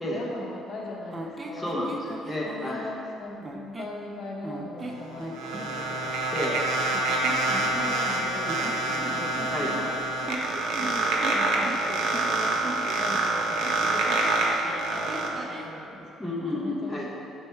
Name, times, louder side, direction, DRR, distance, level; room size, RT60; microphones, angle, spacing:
voice 1, 0.1-1.8 2.3-6.2 7.5-10.0 10.8-12.6 12.9-17.0, left 2 dB, 45° left, -3 dB, 0.9 m, -40 dB
sound 1, 1.1-2.8 3.4-4.0 4.4-5.7 6.9-8.1 8.4-13.0 13.6-15.7, right 2 dB, 20° right, 0.5 m, -38 dB
voice 2, 1.5-2.8 6.3-6.6 9.5-9.7 16.2-17.1, left 1 dB, 5° left, -5 dB, 0.9 m, -31 dB
sound 2, 4.8-15.3, right 2 dB, 85° right, 0.9 m, -27 dB
4.5 x 4.4 x 5.6 m, 2.8 s
cardioid pair, 135°, 0 cm